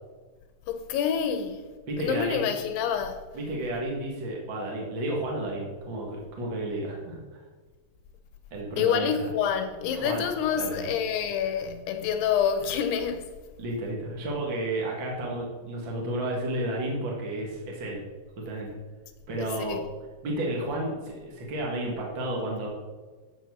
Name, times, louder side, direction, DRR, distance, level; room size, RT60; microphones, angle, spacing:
voice 1, 0.7-1.6 2.0-3.2 8.8-13.3 19.4-19.8, left 8 dB, 75° left, 2.6 m, -27 dB
voice 2, 1.9-2.5 3.3-7.4 8.5-9.3 10.0-10.3 10.5-10.9 11.4-11.5 13.6-18.0 18.4-18.8 19.3-19.8 20.2-22.7, right 1 dB, 50° right, 1.4 m, -32 dB
13.5 x 7.8 x 6.3 m
omnidirectional pair, 5.7 m